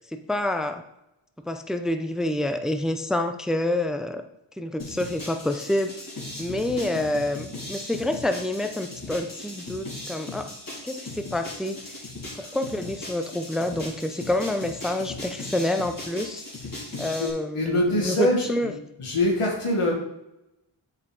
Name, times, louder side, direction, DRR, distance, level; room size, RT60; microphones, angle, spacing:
voice 1, 0.1-0.8 1.5-4.2 4.6-5.9 6.4-10.5 10.8-12.0 12.4-16.4 17.0-18.7, left 1 dB, ahead, 7 dB, 0.6 m, -28 dB
sound 1, 4.8-17.3, left 2 dB, 40° left, 2.8 m, -38 dB
voice 2, 16.9-17.3 17.5-18.7 19.0-19.9, left 1 dB, 90° left, -1 dB, 2.0 m, -24 dB
7.8 x 5.5 x 4.1 m, 0.88 s
wide cardioid pair, 60°, 50 cm